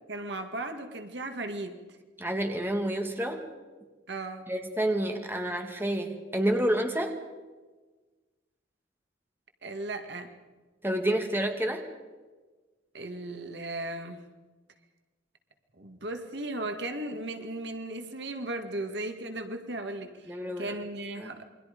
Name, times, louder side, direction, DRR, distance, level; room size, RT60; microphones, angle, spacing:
voice 1, 0.1-1.8 4.1-4.4 9.6-10.3 12.9-14.2 15.8-21.5, right 2 dB, 65° right, 6 dB, 2.0 m, -36 dB
voice 2, 2.2-3.4 4.5-7.1 10.8-11.8 20.3-20.7 21.2-21.3, right 1 dB, 10° right, 4 dB, 2.3 m, -29 dB
28.5 x 23.5 x 5.3 m, 1.3 s
head